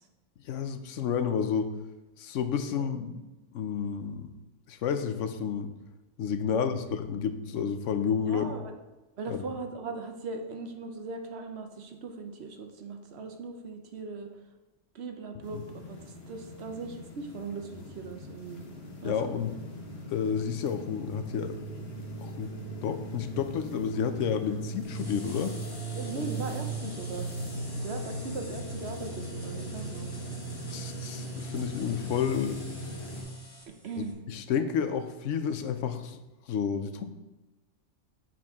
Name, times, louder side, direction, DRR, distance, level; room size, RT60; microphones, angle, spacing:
voice 1, 0.4-1.7 2.2-3.2 3.5-4.3 4.7-5.7 6.2-8.5 9.3-9.4 15.5-15.6 19.0-19.5 20.1-21.5 22.2-22.5 22.8-25.5 30.7-32.6 34.3-36.2 36.5-37.0, left 7 dB, 75° left, 9 dB, 0.9 m, -30 dB
voice 2, 8.2-8.7 9.2-14.3 14.9-18.6 19.0-19.4 25.9-27.3 27.8-30.1 33.7-34.2, right 4 dB, 60° right, 5 dB, 0.9 m, -39 dB
sound 1, 15.4-33.2, right 1 dB, 55° left, 1.3 m, -39 dB
sound 2, 24.8-34.1, left 2 dB, 20° left, 0.8 m, -48 dB
7.3 x 4.9 x 3.5 m, 1.1 s
omnidirectional pair, 1.3 m